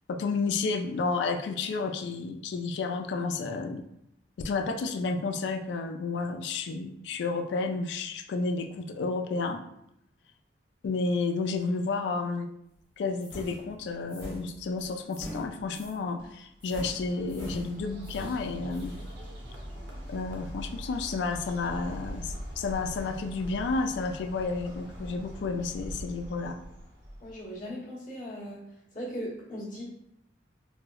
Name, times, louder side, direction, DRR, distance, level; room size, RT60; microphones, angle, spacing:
voice 1, 0.1-3.8 4.4-9.6 10.8-12.5 13.0-18.9 20.1-26.6, left 4 dB, 70° left, 6 dB, 0.3 m, -31 dB
sound 1, 13.2-16.0 16.6-19.1, equal, 10° left, 0.8 m, -43 dB
Bird, 16.2-27.6, equal, 75° right, 0.8 m, -42 dB
voice 2, 27.2-28.6 28.9-29.8, equal, 45° left, -7 dB, 1.0 m, -38 dB
4.1 x 2.0 x 2.2 m, 0.80 s
head